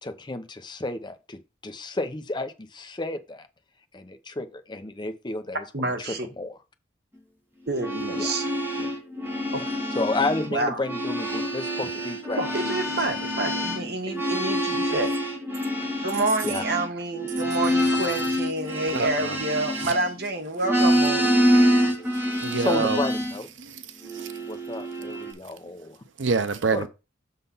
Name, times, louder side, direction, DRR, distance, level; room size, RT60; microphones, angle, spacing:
voice 1, 0.0-3.5 3.9-6.6 8.2-8.4 8.8-8.9 9.5-9.7 10.0-13.1 15.9-16.1 16.4-16.6 22.5-23.5 24.5-26.0 26.7-26.9, left 2 dB, 25° left, 0.7 m, -32 dB
voice 2, 5.7-6.3 7.7-8.4 9.5-9.6 10.5-10.8 12.4-15.1 16.0-21.2, right 2 dB, 60° right, 1.6 m, -28 dB
sound 1, 7.7-10.5 10.8-20.3 20.6-23.4 24.0-25.3, equal, 10° right, 1.6 m, -26 dB
voice 3, 18.9-19.4 22.4-23.0 23.6-24.3 26.2-26.9, right 4 dB, 90° right, 0.7 m, -27 dB
6.7 x 3.9 x 5.5 m
head